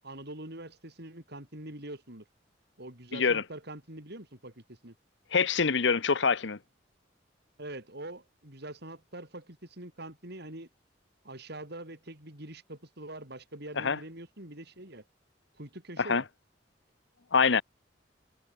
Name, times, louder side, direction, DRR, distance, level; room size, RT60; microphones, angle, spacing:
voice 1, 0.0-2.2 2.8-4.9 7.6-10.7 11.2-15.0 15.6-16.3, right 1 dB, 60° right, 7.8 m, -44 dB
voice 2, 3.1-3.4 5.3-6.6 13.8-14.0 16.1-16.2 17.3-17.6, left 5 dB, 70° left, 0.9 m, -25 dB
head